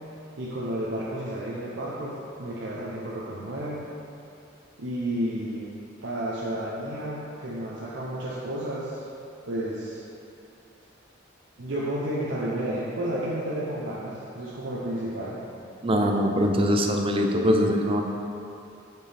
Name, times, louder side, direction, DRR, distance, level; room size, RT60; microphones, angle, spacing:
voice 1, 0.4-3.9 4.8-5.7 6.0-9.0 9.5-10.0 11.6-15.4, right 1 dB, 75° right, -7 dB, 0.8 m, -31 dB
voice 2, 15.8-18.0, equal, 30° right, 2 dB, 0.5 m, -22 dB
8.0 x 4.5 x 3.5 m, 2.7 s
head